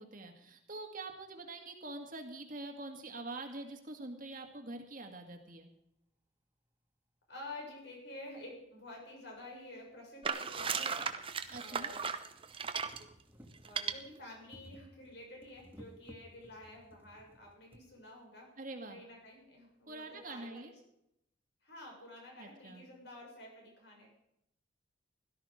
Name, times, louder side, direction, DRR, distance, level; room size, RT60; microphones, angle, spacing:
voice 1, 0.0-5.7 11.5-11.9 18.6-19.0 19.9-20.7 22.4-22.8, right 2 dB, 40° right, 4 dB, 2.1 m, -45 dB
voice 2, 7.3-11.0 11.6-12.0 13.6-18.5 18.9-20.7 21.6-24.1, left 1 dB, 60° left, 0 dB, 6.6 m, -50 dB
sound 1, 8.3-8.4 9.4-9.5 9.9-10.0 10.3-17.9 18.8-18.9 19.1-19.2, equal, 10° right, 1.8 m, -59 dB
sound 2, 10.2-13.0 13.6-13.9, right 6 dB, 25° right, 0.8 m, -36 dB
17.0 x 13.0 x 5.1 m, 0.79 s
head